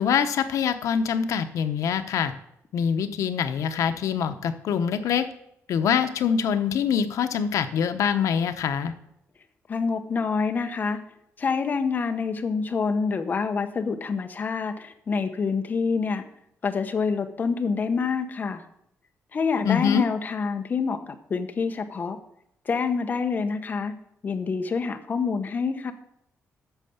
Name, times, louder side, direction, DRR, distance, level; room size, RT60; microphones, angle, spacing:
voice 1, 0.0-2.3 2.7-5.3 5.7-8.9 19.6-20.0, left 7 dB, 90° left, 9 dB, 0.8 m, -24 dB
voice 2, 9.7-11.0 11.4-16.2 16.6-18.6 19.3-22.2 22.7-24.0 24.2-25.9, left 5 dB, 35° left, 7 dB, 0.9 m, -27 dB
9.1 x 6.5 x 7.0 m, 0.75 s
wide cardioid pair, 160°, 5 cm